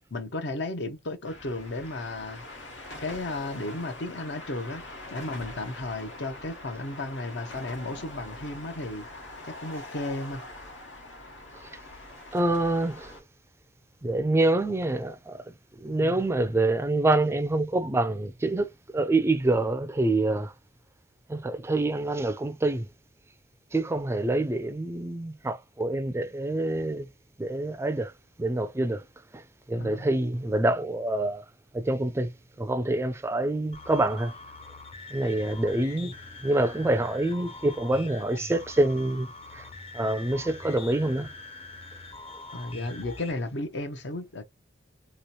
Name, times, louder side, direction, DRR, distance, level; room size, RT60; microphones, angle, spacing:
voice 1, 0.1-2.4 3.0-4.8 5.1-9.1 9.6-10.4 15.9-16.2 29.8-30.1 42.5-44.4, left 2 dB, 65° left, 0.7 m, -34 dB
sound 1, 1.2-13.2, left 2 dB, 85° left, 1.4 m, -43 dB
voice 2, 12.3-13.1 14.0-15.4 15.8-18.7 18.9-20.5 21.3-22.9 23.7-27.1 27.4-28.1 28.4-29.0 29.7-31.4 31.7-32.3 32.6-34.3 35.1-36.1 36.4-39.3 39.5-39.6 39.9-41.3, right 2 dB, 15° right, 0.3 m, -26 dB
sound 2, 33.7-43.3, left 3 dB, 35° left, 0.6 m, -44 dB
3.0 x 2.9 x 2.8 m
head